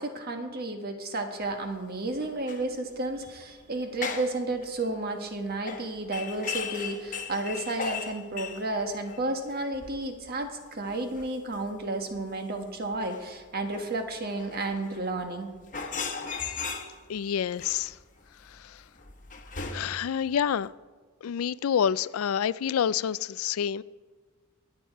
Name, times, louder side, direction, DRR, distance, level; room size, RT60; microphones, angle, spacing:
voice 1, 0.0-15.5, right 2 dB, 50° right, 1.5 m, -32 dB
sound 1, 1.4-1.5 2.2-2.7 2.9-3.2 3.8-4.4 4.6-4.9 5.7-9.5 9.7-10.6 10.9-11.8 12.1-12.2 12.6-12.7 12.9-15.2 15.5-17.2 17.6-20.2 20.6-20.7, left 5 dB, 40° left, 1.1 m, -37 dB
voice 2, 17.1-17.9 19.7-20.7 21.2-23.8, left 8 dB, 85° left, 0.4 m, -27 dB
23.0 x 8.8 x 4.6 m
head